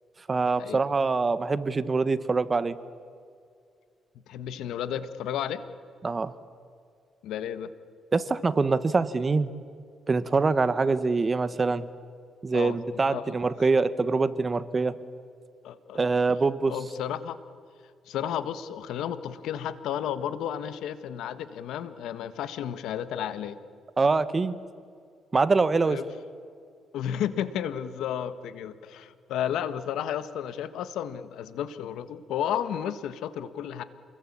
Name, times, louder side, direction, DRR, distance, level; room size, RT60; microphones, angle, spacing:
voice 1, 0.3-2.8 6.0-6.3 8.1-9.5 10.1-11.9 12.4-15.0 15.9-16.7 24.0-24.6 25.3-26.0, right 4 dB, 30° right, 14 dB, 1.3 m, -24 dB
voice 2, 4.3-5.6 7.2-7.7 12.5-12.7 13.0-13.3 15.6-16.0 16.7-17.4 18.1-23.6 25.8-26.0 26.9-33.8, left 9 dB, 85° left, 12 dB, 1.5 m, -32 dB
29.0 x 21.5 x 8.7 m, 2.3 s
cardioid pair, 90°, 0 cm